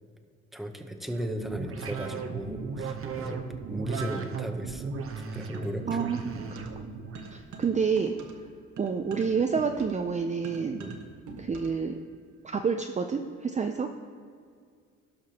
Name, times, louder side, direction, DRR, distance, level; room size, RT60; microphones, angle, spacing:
voice 1, 0.5-6.3 10.8-11.0, equal, ahead, 4 dB, 0.8 m, -37 dB
sound 1, 1.1-7.4, right 5 dB, 45° right, 0.8 m, -36 dB
sound 2, 5.5-6.9 7.1-11.9, right 4 dB, 70° right, 1.2 m, -44 dB
voice 2, 5.9-6.2 7.3-8.1 8.8-10.8 11.4-12.0 12.5-13.9, right 5 dB, 25° right, 4 dB, 0.5 m, -28 dB
17.0 x 5.9 x 2.9 m, 2.1 s
cardioid pair, 90°, 30 cm